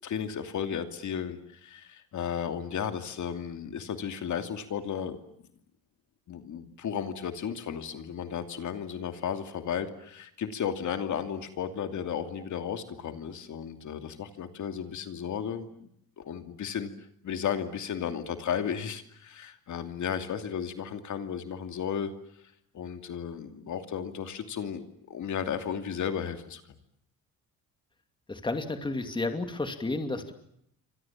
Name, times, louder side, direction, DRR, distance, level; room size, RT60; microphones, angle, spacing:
voice 1, 0.0-5.2 6.3-15.9 16.2-16.9 17.2-22.1 22.7-26.6, left 8 dB, 55° left, 8 dB, 2.7 m, -34 dB
voice 2, 28.3-30.3, left 2 dB, 15° left, 7 dB, 2.5 m, -31 dB
29.5 x 25.5 x 7.4 m, 0.73 s
cardioid pair, 145°, 36 cm